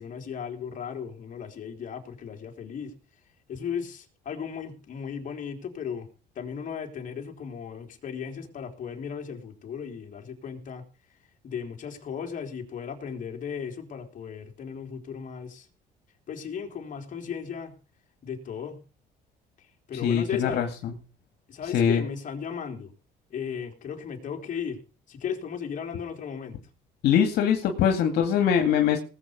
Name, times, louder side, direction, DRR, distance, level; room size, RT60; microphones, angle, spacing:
voice 1, 0.0-2.9 3.5-6.1 6.4-10.8 11.1-11.2 11.4-15.7 16.3-17.7 18.2-18.8 19.6-20.6 21.5-22.9 23.3-24.8 25.1-26.6, left 7 dB, 50° left, 3 dB, 3.9 m, -36 dB
voice 2, 20.0-20.9 21.7-22.0 27.0-29.0, left 8 dB, 75° left, 4 dB, 2.3 m, -22 dB
19.5 x 8.1 x 5.3 m, 0.36 s
cardioid pair, 110°, 17 cm